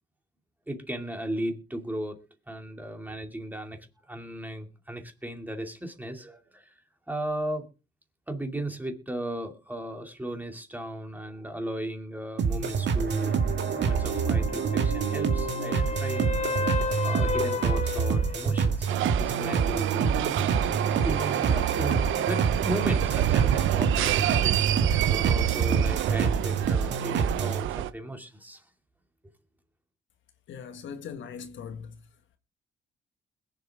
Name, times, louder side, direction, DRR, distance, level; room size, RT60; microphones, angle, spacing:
voice 1, 0.7-2.2 2.5-3.8 4.1-6.8 7.1-7.6 8.3-13.4 13.8-16.4 17.0-20.1 21.0-28.6, right 1 dB, 10° right, 2.6 m, -36 dB
sound 1, 12.4-27.6, right 6 dB, 60° right, 2.0 m, -27 dB
sound 2, 13.1-18.7 22.8-22.9, left 4 dB, 35° left, 1.3 m, -33 dB
sound 3, 18.9-27.9, right 13 dB, 80° right, 0.7 m, -28 dB
voice 2, 30.5-31.9, left 6 dB, 70° left, 1.6 m, -40 dB
21.5 x 7.6 x 3.6 m
cardioid pair, 90°, 20 cm